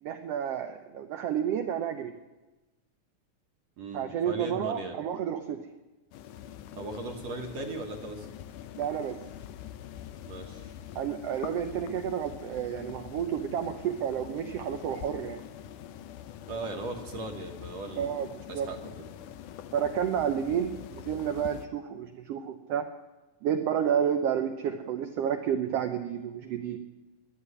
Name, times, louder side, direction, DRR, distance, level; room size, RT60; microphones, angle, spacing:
voice 1, 0.0-2.1 3.9-5.6 8.8-9.1 10.9-15.4 18.0-18.3 18.5-18.7 19.7-22.9 23.4-26.8, right 8 dB, 80° right, 6 dB, 1.4 m, -30 dB
voice 2, 3.8-5.0 6.7-8.3 10.2-10.7 16.5-19.1, right 2 dB, 60° right, 1 dB, 2.3 m, -38 dB
sound 1, 6.1-21.7, left 10 dB, 85° left, 2.2 m, -44 dB
11.5 x 9.8 x 9.8 m, 1.1 s
omnidirectional pair, 3.6 m